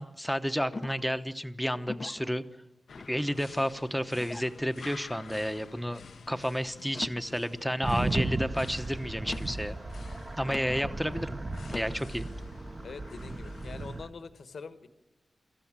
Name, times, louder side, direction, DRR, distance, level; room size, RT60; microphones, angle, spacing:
voice 1, 0.0-2.4 3.1-9.8 10.4-11.4 11.7-12.3, equal, ahead, 10 dB, 1.0 m, -31 dB
sound 1, 0.7-1.2 1.8-2.3 3.0-3.5 4.2-4.6 5.3-5.7 6.8-7.3 8.1-8.5 9.2-9.7 10.4-10.8 11.6-12.0, left 3 dB, 35° left, 0.7 m, -42 dB
sound 2, 2.9-14.0, left 6 dB, 90° left, 0.8 m, -51 dB
sound 3, 7.8-14.1, right 2 dB, 30° right, 1.0 m, -35 dB
voice 2, 12.8-14.9, left 4 dB, 70° left, 11 dB, 1.3 m, -44 dB
25.5 x 14.5 x 7.5 m, 1.0 s
wide cardioid pair, 115°, 0 cm